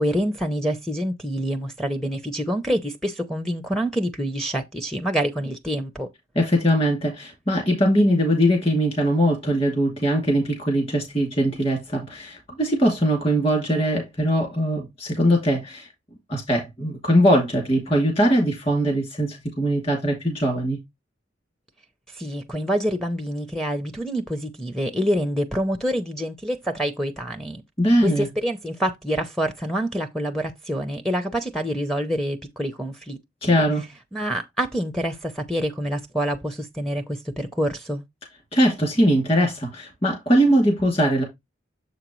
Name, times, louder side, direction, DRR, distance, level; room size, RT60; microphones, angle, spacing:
voice 1, 0.0-6.1 22.1-27.6 28.0-33.2 33.4-33.6 34.1-38.0, equal, ahead, 0.6 m, -26 dB
voice 2, 6.4-15.9 16.3-20.8 27.8-28.3 33.4-33.8 38.5-41.2, equal, 30° left, 2.5 m, -21 dB
7.3 x 5.0 x 3.0 m
head